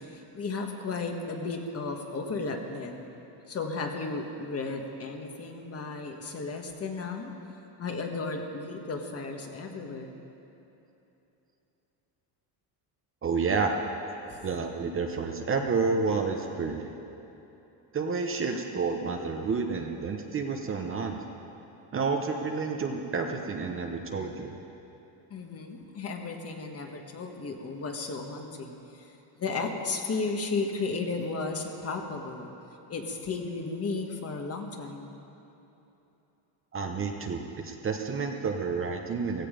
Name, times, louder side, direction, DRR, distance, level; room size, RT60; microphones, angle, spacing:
voice 1, 0.0-3.1 3.5-7.3 7.8-10.1 14.3-14.4 25.3-32.5 32.9-35.1, left 3 dB, 30° left, 3 dB, 1.5 m, -34 dB
voice 2, 13.2-13.7 14.4-16.9 17.9-21.2 21.9-24.5 36.7-39.5, right 4 dB, 25° right, 3 dB, 0.9 m, -30 dB
16.0 x 16.0 x 5.1 m, 3.0 s
cardioid pair, 145°, 47 cm